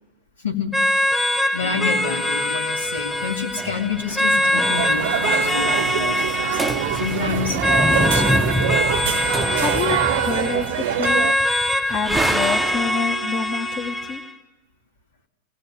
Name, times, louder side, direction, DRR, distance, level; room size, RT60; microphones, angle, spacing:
voice 1, 0.4-1.0 1.5-6.6 6.9-8.4, left 5 dB, 70° left, 1 dB, 3.0 m, -29 dB
sound 1, 0.7-14.3, left 1 dB, 10° left, 1.6 m, -23 dB
sound 2, 2.9-5.4 5.6-5.7 6.0-6.3 6.5-13.1, right 1 dB, 5° right, 0.8 m, -28 dB
sound 3, 4.3-11.3, right 12 dB, 55° right, 0.8 m, -25 dB
voice 2, 9.0-14.2, left 5 dB, 35° left, 2 dB, 1.7 m, -28 dB
28.0 x 18.5 x 9.2 m, 1.1 s
figure-of-eight pair, 90°, 0 cm